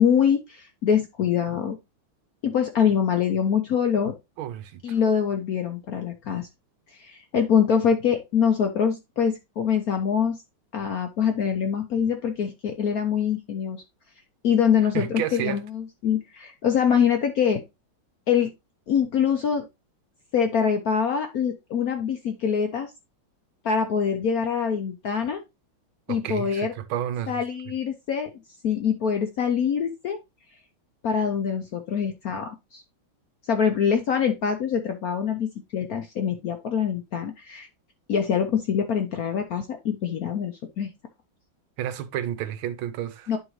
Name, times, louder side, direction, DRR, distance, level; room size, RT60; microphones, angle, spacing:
voice 1, 0.0-1.8 2.4-4.2 4.8-6.5 6.9-10.4 10.7-13.8 14.4-17.6 18.3-18.5 18.9-19.6 20.3-22.9 23.6-25.4 26.1-26.7 27.3-28.3 28.6-30.2 31.0-32.8 33.5-37.7 38.1-40.9 43.3-43.4, left 7 dB, 65° left, 0.9 m, -24 dB
voice 2, 4.4-5.0 14.9-15.6 26.1-27.4 41.8-43.3, right 10 dB, 80° right, 1.5 m, -31 dB
11.0 x 3.7 x 3.0 m
omnidirectional pair, 2.3 m